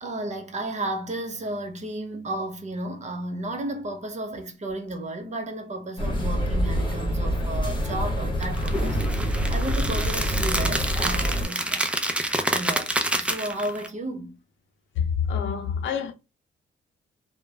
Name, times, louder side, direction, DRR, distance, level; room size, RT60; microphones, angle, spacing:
voice 1, 0.0-11.9 12.5-14.4, right 1 dB, 35° right, 0.8 m, -33 dB
sound 1, 6.0-11.5, equal, 25° left, 1.1 m, -26 dB
sound 2, 8.4-13.9, right 1 dB, 5° right, 0.4 m, -28 dB
voice 2, 15.0-16.1, left 7 dB, 75° left, 0.6 m, -26 dB
3.0 x 2.1 x 2.2 m
cardioid pair, 90°, 20 cm